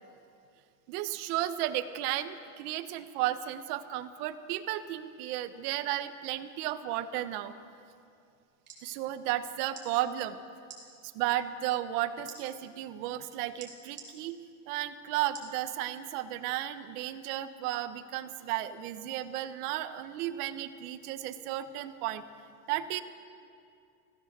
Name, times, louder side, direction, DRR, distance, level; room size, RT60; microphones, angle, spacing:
voice 1, 0.9-7.5 8.8-10.4 11.1-14.4 14.7-22.2 22.7-23.0, right 13 dB, 80° right, 11 dB, 1.3 m, -34 dB
sound 1, 8.4-8.8 9.7-9.9 10.6-10.8 12.3-12.4 13.6-14.1 15.3-15.6 16.1-16.2, right 6 dB, 25° right, 4.0 m, -46 dB
25.5 x 17.0 x 6.8 m, 2.5 s
cardioid pair, 165°, 45 cm